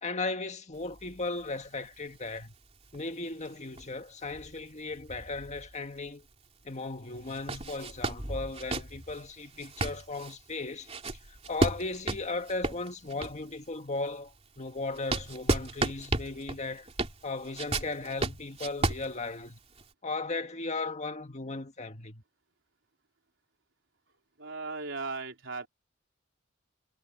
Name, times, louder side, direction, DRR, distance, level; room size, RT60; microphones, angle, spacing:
voice 1, 0.0-2.5 2.9-6.3 6.6-10.9 11.3-16.9 17.2-19.6 20.0-22.2, left 3 dB, 35° left, 1.8 m, -36 dB
sound 1, 0.7-6.1 6.4-6.5 7.2-13.6 14.1-19.8, right 2 dB, 30° right, 2.9 m, -34 dB
voice 2, 24.4-25.7, right 3 dB, 70° right, 4.0 m, -37 dB
head